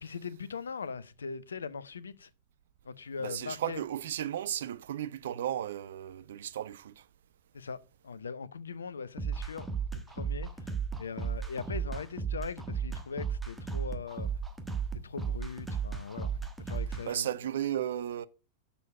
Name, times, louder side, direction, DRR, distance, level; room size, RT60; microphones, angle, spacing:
voice 1, 0.0-2.3 2.8-3.8 7.5-7.8 8.0-9.7 9.9-10.7 11.0-14.3 14.9-17.3, left 5 dB, 70° left, 0.6 m, -40 dB
voice 2, 3.2-7.0 17.0-18.3, right 11 dB, 60° right, 0.4 m, -34 dB
sound 1, 9.2-17.0, right 6 dB, 10° right, 1.3 m, -34 dB
6.8 x 6.3 x 4.8 m
figure-of-eight pair, 90°, 0 cm